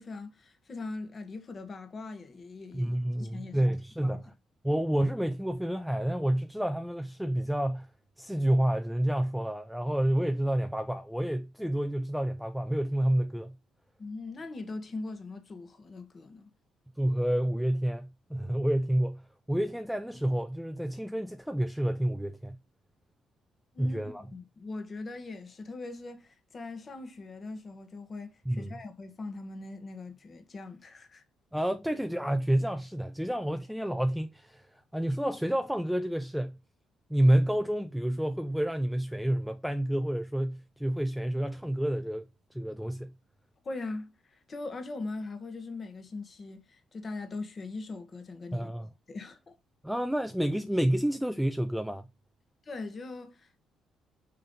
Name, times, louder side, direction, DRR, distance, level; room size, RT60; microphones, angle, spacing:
voice 1, 0.0-3.7 4.0-4.2 14.0-16.5 23.7-31.2 43.6-48.7 49.1-49.5 52.6-53.6, left 3 dB, 30° left, 1.5 m, -41 dB
voice 2, 2.7-4.3 4.6-7.9 8.2-13.5 17.0-19.2 19.5-22.6 23.8-24.2 28.5-28.8 31.5-36.6 37.1-42.3 42.5-43.1 48.5-48.9 49.8-52.1, right 1 dB, ahead, 0.4 m, -29 dB
5.6 x 5.3 x 3.9 m
cardioid pair, 160°, 0 cm